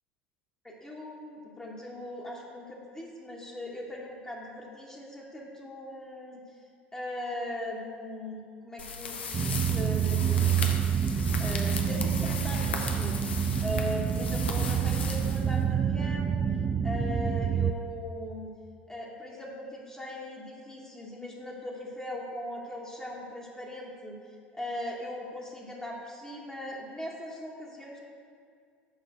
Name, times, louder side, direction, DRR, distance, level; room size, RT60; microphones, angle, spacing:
voice 1, 0.6-6.4 6.9-10.7 11.4-13.4 13.6-16.4 16.8-18.5 18.9-28.0, left 1 dB, 10° left, -3 dB, 1.1 m, -39 dB
sound 1, 8.8-15.9, left 4 dB, 80° left, 0.7 m, -37 dB
sound 2, 9.3-17.7, right 8 dB, 20° right, 0.3 m, -27 dB
6.5 x 5.0 x 6.0 m, 2.2 s
figure-of-eight pair, 75°, 6 cm